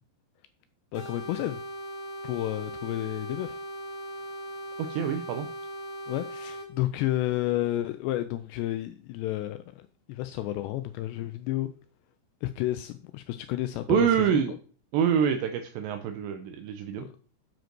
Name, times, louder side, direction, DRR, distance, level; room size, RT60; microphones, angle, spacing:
voice 1, 0.9-1.6 2.2-3.6 6.1-11.7 12.4-14.4 17.0-17.1, left 15 dB, 90° left, 10 dB, 2.5 m, -31 dB
sound 1, 0.9-6.7, right 1 dB, 45° left, 2.0 m, -39 dB
voice 2, 4.9-5.5 13.9-14.5 14.9-17.1, right 8 dB, 80° right, 7 dB, 2.8 m, -26 dB
9.2 x 5.1 x 6.0 m, 0.43 s
omnidirectional pair, 5.5 m